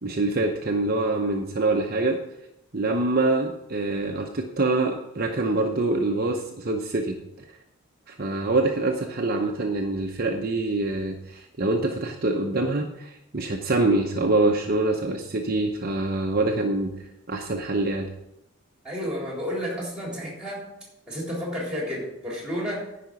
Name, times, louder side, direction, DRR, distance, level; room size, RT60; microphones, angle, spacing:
voice 1, 0.0-2.2 2.7-7.2 8.1-16.9 17.3-18.1, right 2 dB, 45° right, 2 dB, 0.8 m, -25 dB
voice 2, 18.8-20.7 21.1-22.9, equal, 5° right, -3 dB, 3.8 m, -31 dB
10.5 x 5.1 x 8.1 m, 0.84 s
head